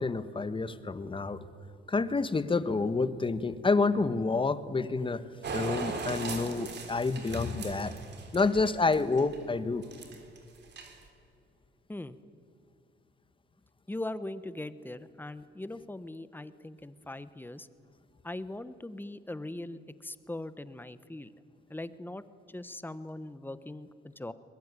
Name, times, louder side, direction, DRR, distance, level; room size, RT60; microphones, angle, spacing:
voice 1, 0.0-1.4 1.9-5.2 5.5-7.9 8.3-9.8, left 3 dB, 25° left, 13 dB, 1.4 m, -28 dB
sound 1, 5.4-9.4 9.8-10.4 10.6-11.1, right 4 dB, 60° right, 3.7 m, -38 dB
voice 2, 13.9-17.7 18.2-21.3 21.7-22.2 22.5-24.3, left 1 dB, 10° left, 14 dB, 1.1 m, -40 dB
23.0 x 21.0 x 9.9 m, 2.5 s
cardioid pair, 90°, 20 cm